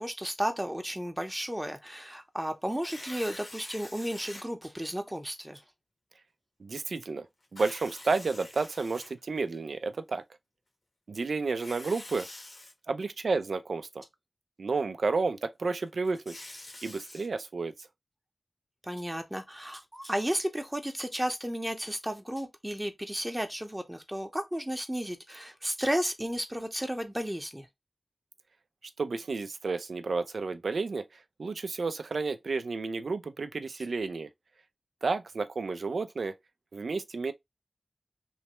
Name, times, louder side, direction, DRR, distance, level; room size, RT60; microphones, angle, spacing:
voice 1, 0.0-5.6 18.8-27.7, equal, 10° right, 0.7 m, -33 dB
Tearing, 2.7-4.4 5.1-5.2 7.4-9.6 11.4-12.7 15.9-17.3, left 2 dB, 85° left, 1.1 m, -46 dB
voice 2, 6.6-7.3 7.5-10.2 11.1-12.3 12.9-14.0 14.6-16.4 16.8-17.9 29.0-34.3 35.0-36.4 36.7-37.3, right 4 dB, 90° right, 0.3 m, -31 dB
3.1 x 2.1 x 2.9 m
wide cardioid pair, 50°, 0 cm